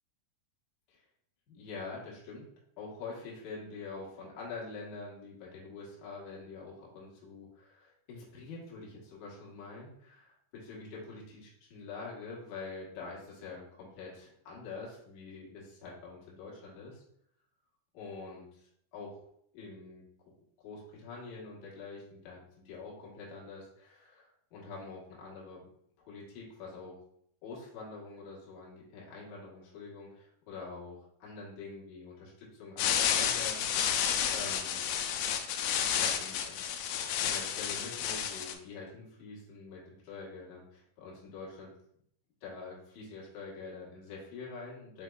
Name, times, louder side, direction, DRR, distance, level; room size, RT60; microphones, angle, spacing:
voice 1, 1.5-2.5 2.8-17.0 17.9-19.2 19.5-20.1 20.6-25.6 26.0-27.0 27.4-34.8 35.9-41.8 42.4-45.0, left 4 dB, 65° left, -5 dB, 2.1 m, -46 dB
sound 1, 32.8-38.5, left 9 dB, 90° left, 2.1 m, -31 dB
6.5 x 3.4 x 2.3 m, 0.70 s
omnidirectional pair, 4.8 m